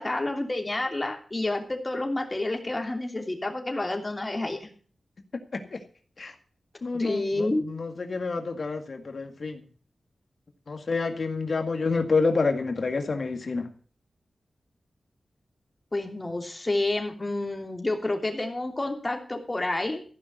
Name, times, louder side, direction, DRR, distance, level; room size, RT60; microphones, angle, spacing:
voice 1, 0.0-4.7 6.9-7.7 15.9-20.0, left 2 dB, 30° left, 4 dB, 3.0 m, -29 dB
voice 2, 6.8-9.6 10.7-13.7, left 4 dB, 60° left, 5 dB, 2.0 m, -28 dB
15.0 x 5.7 x 7.9 m, 0.43 s
cardioid pair, 50°, 0 cm